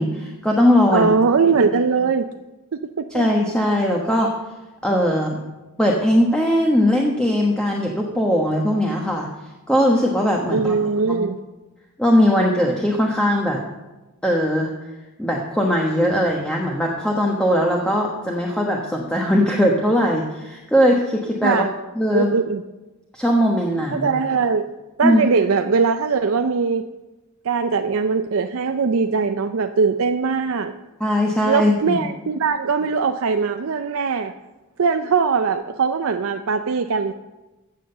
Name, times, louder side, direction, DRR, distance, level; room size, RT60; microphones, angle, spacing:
voice 1, 0.0-1.1 3.1-4.3 4.8-5.4 5.8-9.3 9.7-11.2 12.0-13.6 14.2-14.7 15.2-21.6 21.9-22.3 23.1-24.1 25.0-25.2 31.0-32.1, equal, 5° left, -1 dB, 1.2 m, -19 dB
voice 2, 0.9-2.3 3.0-3.2 10.5-11.4 21.4-21.7 22.1-22.6 23.9-24.7 25.0-26.9 27.4-30.7 31.5-34.3 34.8-37.1, right 5 dB, 65° right, 8 dB, 0.5 m, -20 dB
15.0 x 7.5 x 6.7 m, 1.1 s
head